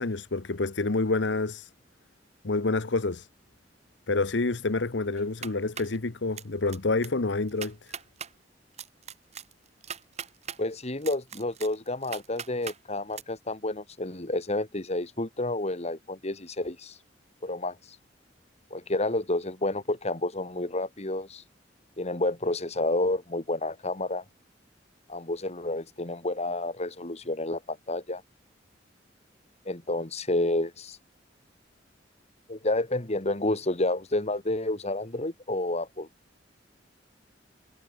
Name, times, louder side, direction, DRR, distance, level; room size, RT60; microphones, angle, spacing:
voice 1, 0.0-1.7 2.4-3.3 4.1-7.9, left 3 dB, 85° left, 1.1 m, -28 dB
sound 1, 5.2-6.0 6.4-6.8 7.0-7.1 7.5-8.3 8.8-10.6 11.0-12.8 13.1-13.2, right 7 dB, 40° right, 1.5 m, -39 dB
voice 2, 10.6-17.0 17.4-17.8 18.7-21.4 22.0-24.2 25.1-28.2 29.7-31.0 32.5-36.1, left 2 dB, 35° left, 2.3 m, -30 dB
head